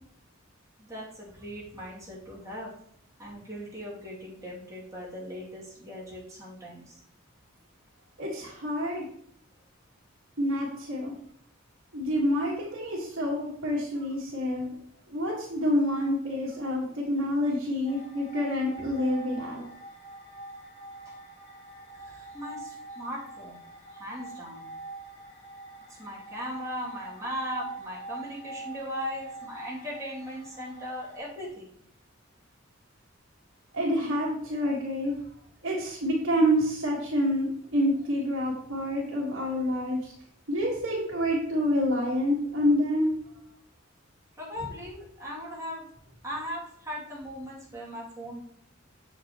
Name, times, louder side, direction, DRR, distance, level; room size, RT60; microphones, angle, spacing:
voice 1, 0.8-2.7 3.2-7.0 18.8-18.9 21.9-23.6 23.9-24.7 26.0-31.7 44.4-45.8 46.2-48.4, equal, 15° right, -6 dB, 2.5 m, -38 dB
voice 2, 8.2-9.1 10.4-11.1 11.9-14.7 15.1-19.6 33.7-35.1 35.6-40.1 40.5-43.1, equal, 70° right, -5 dB, 1.6 m, -27 dB
sound 1, 17.8-31.2, right 2 dB, 35° left, 2.7 m, -44 dB
8.2 x 7.1 x 3.0 m, 0.68 s
head